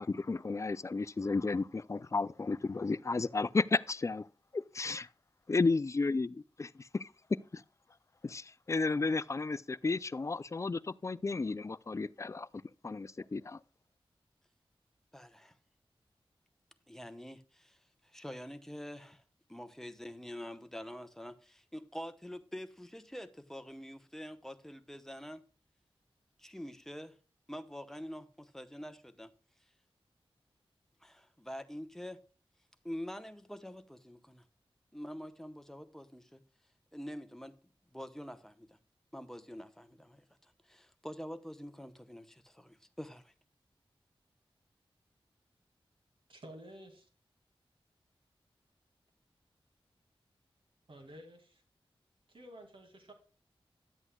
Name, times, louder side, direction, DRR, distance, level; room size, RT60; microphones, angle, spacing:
voice 1, 0.0-4.3 4.5-5.1 5.5-7.1 7.5-7.6 8.2-12.5 12.8-13.6, left 3 dB, 30° left, 0.3 m, -33 dB
voice 2, 15.1-15.6 16.9-17.8 18.0-19.2 19.5-25.4 26.4-27.2 27.5-29.3 31.0-32.2 32.8-34.4 34.9-36.4 36.9-37.6 37.9-38.8 39.1-43.3, equal, 5° left, 0.8 m, -46 dB
voice 3, 46.3-47.1 50.9-51.6 52.3-53.1, equal, 65° right, 2.2 m, -52 dB
11.0 x 8.1 x 2.2 m
wide cardioid pair, 75°, 10 cm